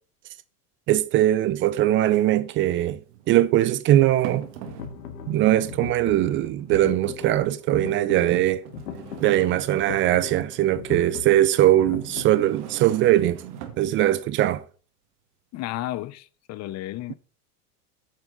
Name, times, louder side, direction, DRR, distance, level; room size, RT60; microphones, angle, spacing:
voice 1, 0.9-3.0 3.3-4.5 5.3-8.6 9.2-13.4 13.8-14.6, right 13 dB, 30° right, 0.3 m, -21 dB
sound 1, 1.2-1.3 2.7-3.4 4.2-5.1 5.3-5.9 6.7-6.8 7.6-7.7 8.7-10.1 12.0-13.9, right 10 dB, 75° right, 1.7 m, -40 dB
sound 2, 4.4-12.5, left 7 dB, 80° left, 1.4 m, -39 dB
voice 2, 15.5-17.1, left 15 dB, 35° left, 0.5 m, -33 dB
8.1 x 6.5 x 3.8 m
hypercardioid pair, 95°, 48 cm